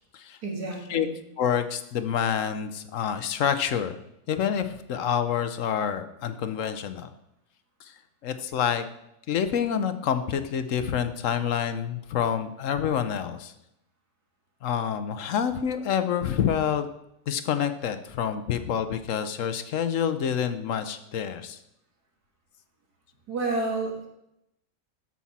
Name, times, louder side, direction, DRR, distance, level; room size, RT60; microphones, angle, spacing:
voice 1, 0.4-1.1 23.3-24.1, right 3 dB, 85° right, 0 dB, 2.4 m, -30 dB
voice 2, 1.4-4.0 4.3-7.1 7.9-8.0 8.2-8.9 9.3-13.5 14.6-16.9 17.3-21.6, left 8 dB, 65° left, 10 dB, 1.0 m, -27 dB
13.0 x 6.0 x 4.2 m, 0.83 s
omnidirectional pair, 1.6 m